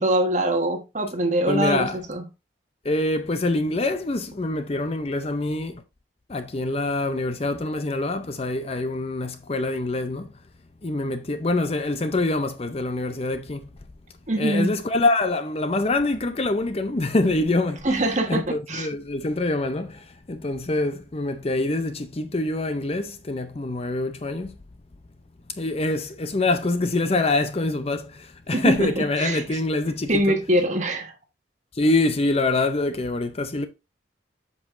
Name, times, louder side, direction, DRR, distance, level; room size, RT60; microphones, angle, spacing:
voice 1, 0.0-2.2 14.3-14.7 17.8-18.9 28.5-29.6 30.1-31.1, right 1 dB, 40° right, 1.4 m, -23 dB
voice 2, 1.5-2.0 2.8-5.8 6.3-10.3 10.8-13.7 14.4-17.9 18.3-24.5 25.6-30.3 31.7-33.7, left 2 dB, 30° left, 0.5 m, -25 dB
7.8 x 5.4 x 2.6 m
head